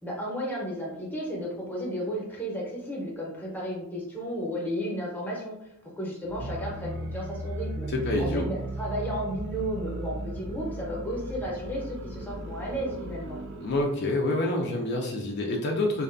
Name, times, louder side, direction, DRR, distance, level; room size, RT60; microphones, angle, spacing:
voice 1, 0.0-5.7 6.0-7.9 8.2-13.4, equal, 10° left, -4 dB, 0.6 m, -33 dB
sound 1, 6.2-13.9, right 1 dB, 55° right, 0.3 m, -36 dB
voice 2, 7.9-8.4 13.6-16.0, left 2 dB, 50° left, 0 dB, 0.3 m, -27 dB
2.5 x 2.3 x 2.4 m, 0.82 s
head